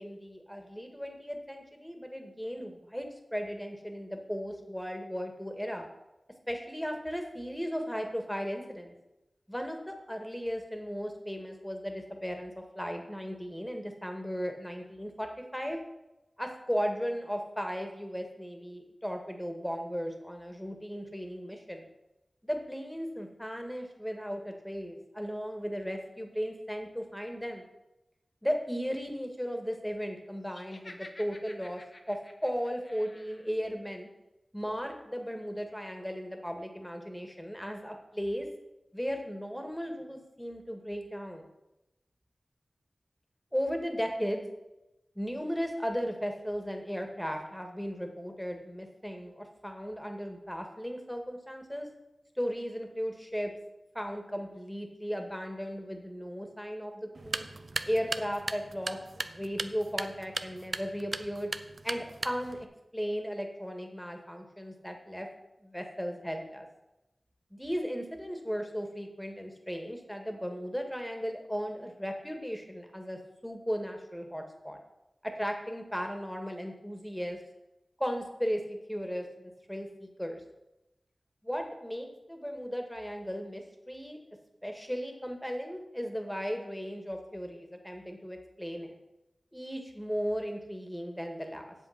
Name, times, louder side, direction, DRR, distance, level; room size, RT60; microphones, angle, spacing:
voice 1, 0.0-5.9 6.5-8.9 9.5-15.8 16.4-21.9 22.4-27.6 28.4-31.8 32.1-34.1 34.5-38.5 38.9-41.5 43.5-44.5 45.2-51.9 52.4-53.5 53.9-57.4 57.9-61.5 61.8-62.7 62.9-65.3 65.6-66.7 67.5-74.8 75.2-77.4 78.0-80.4 81.4-84.2 84.6-89.0 89.5-91.7, equal, 5° left, 4 dB, 1.9 m, -36 dB
Laughter, 30.5-33.5, left 2 dB, 45° left, 1.2 m, -51 dB
sound 1, 57.1-62.7, right 3 dB, 65° right, 0.5 m, -38 dB
8.2 x 7.3 x 5.9 m, 0.94 s
wide cardioid pair, 55°, 0 cm